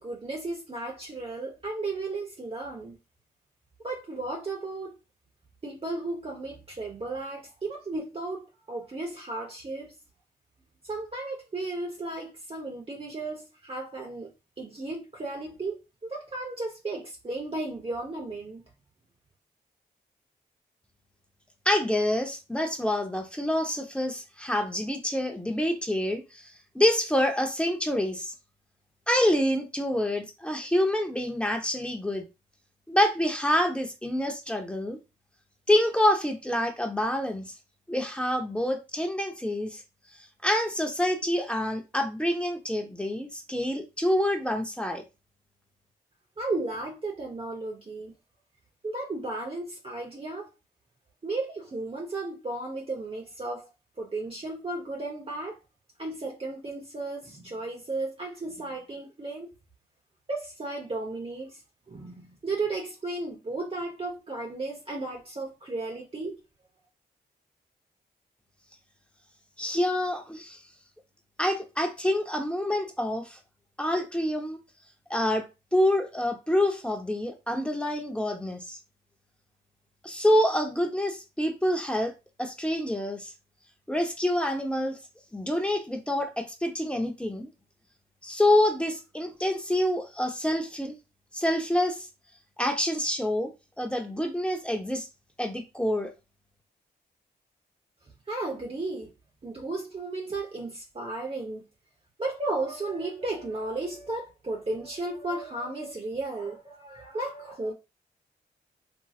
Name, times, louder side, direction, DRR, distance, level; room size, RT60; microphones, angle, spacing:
voice 1, 0.0-3.0 3.8-5.0 5.6-9.9 10.8-14.3 14.6-18.6 46.4-48.1 48.8-50.5 51.2-53.7 54.0-55.6 56.0-59.5 60.3-61.6 61.9-66.4 98.3-99.1 99.4-101.6 102.2-107.7, right 2 dB, 35° right, 0.9 m, -34 dB
voice 2, 21.6-28.3 29.1-32.2 32.9-35.0 35.7-37.5 37.9-39.8 40.4-45.0 69.6-70.6 71.4-73.4 73.8-74.6 75.1-75.5 75.7-78.8 80.0-82.1 82.4-83.3 83.9-85.0 85.3-87.5 88.2-91.0 91.3-92.1 92.6-93.5 93.8-95.1 95.4-96.1, left 1 dB, 5° left, 0.9 m, -27 dB
2.9 x 2.8 x 2.4 m
supercardioid pair, 50°, 18 cm